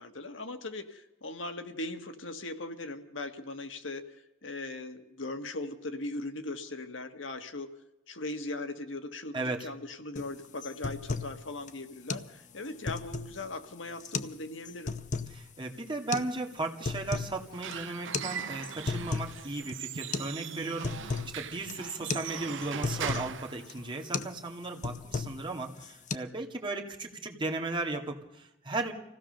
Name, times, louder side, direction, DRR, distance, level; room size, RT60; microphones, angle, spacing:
voice 1, 0.0-7.7 8.1-14.9, left 2 dB, 70° left, 7 dB, 1.6 m, -39 dB
voice 2, 9.3-9.7 15.3-28.9, right 2 dB, 25° right, 1 dB, 2.1 m, -36 dB
sound 1, 10.2-10.3 10.6-11.4 11.7-11.8 12.1-12.3 12.7-13.4 14.0-14.4 14.7-15.3 16.1-16.3 16.7-17.4 17.6-17.8 18.1-18.3 18.6-19.4 19.7-19.8 20.1-20.4 20.6-21.3 21.7-21.9 22.1-22.3 22.6-23.3 23.7-23.9 24.1-24.4 24.6-25.5 25.8-26.2, left 4 dB, 40° left, 0.8 m, -34 dB
Squeak / Wood, 17.4-24.3, right 7 dB, 65° right, 0.7 m, -40 dB
26.0 x 16.5 x 6.6 m, 0.92 s
head